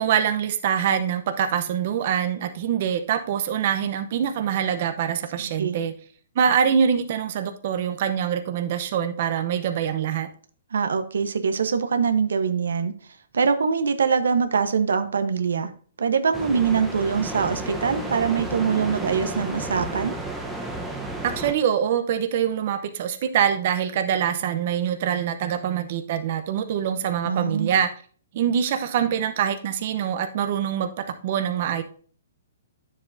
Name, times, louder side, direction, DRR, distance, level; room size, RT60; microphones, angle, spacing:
voice 1, 0.0-5.9 6.4-10.3 21.2-27.9 28.3-31.8, right 8 dB, 45° right, 7 dB, 0.8 m, -24 dB
voice 2, 5.4-5.8 10.7-12.9 13.3-15.7 16.0-20.1 27.2-27.7, right 6 dB, 90° right, 9 dB, 1.0 m, -23 dB
sound 1, 16.3-21.5, right 2 dB, 5° right, 0.9 m, -32 dB
9.6 x 7.4 x 2.7 m, 0.42 s
hypercardioid pair, 160°, 0 cm